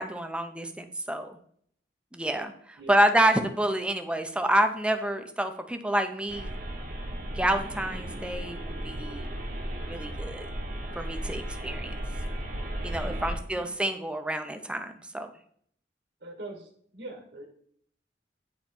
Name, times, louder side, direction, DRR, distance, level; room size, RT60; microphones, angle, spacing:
voice 1, 0.0-1.4 2.1-6.6 7.3-9.3 9.9-10.5 11.0-11.9 12.8-15.3, right 1 dB, 5° right, 7 dB, 0.5 m, -28 dB
sound 1, 6.3-13.4, right 1 dB, 55° right, 1.1 m, -35 dB
voice 2, 13.0-13.8 16.2-17.5, right 2 dB, 70° right, 2 dB, 1.5 m, -43 dB
8.8 x 3.1 x 4.3 m, 0.63 s
head